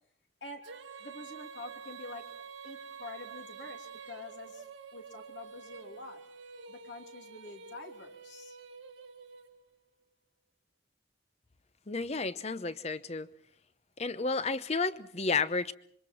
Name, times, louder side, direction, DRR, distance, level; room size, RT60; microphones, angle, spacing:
Female singing, 0.6-9.8, right 6 dB, 90° right, 1.7 m, -48 dB
voice 1, 1.0-2.3 2.6-4.7 4.9-6.2 6.7-8.6, left 2 dB, 70° left, 3.0 m, -47 dB
voice 2, 11.9-13.3 14.0-15.7, left 4 dB, 35° left, 0.8 m, -32 dB
26.5 x 24.0 x 4.5 m
head